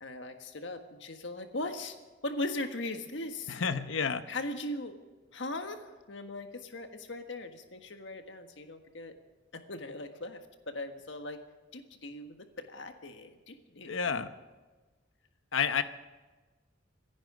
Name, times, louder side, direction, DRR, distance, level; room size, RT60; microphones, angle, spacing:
voice 1, 0.0-2.0 2.2-3.6 4.3-4.9 5.3-9.1 9.7-10.4 10.7-11.4 11.7-14.2, left 2 dB, 65° left, 6 dB, 1.6 m, -39 dB
voice 2, 3.5-4.3 13.9-14.3 15.5-15.8, left 6 dB, 85° left, 11 dB, 0.9 m, -30 dB
26.0 x 10.5 x 5.0 m, 1.3 s
head